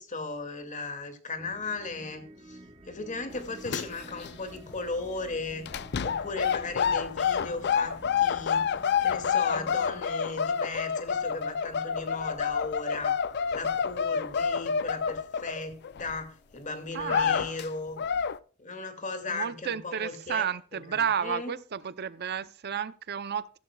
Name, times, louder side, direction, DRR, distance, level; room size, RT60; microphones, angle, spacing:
voice 1, 0.0-2.6 2.9-5.7 6.0-13.2 13.5-18.0 18.6-20.4 20.7-21.6, left 3 dB, 40° left, 2.3 m, -37 dB
sound 1, 1.4-10.0, right 1 dB, 25° right, 1.1 m, -51 dB
sound 2, 2.3-16.9, equal, 5° right, 2.8 m, -54 dB
sound 3, 3.3-4.3 4.6-4.8 5.7-16.1 16.6-16.7 17.0-17.7 18.0-18.4, left 7 dB, 55° left, 0.5 m, -28 dB
voice 2, 16.9-17.5 19.3-23.6, right 7 dB, 50° right, 0.6 m, -32 dB
15.5 x 13.5 x 2.3 m
head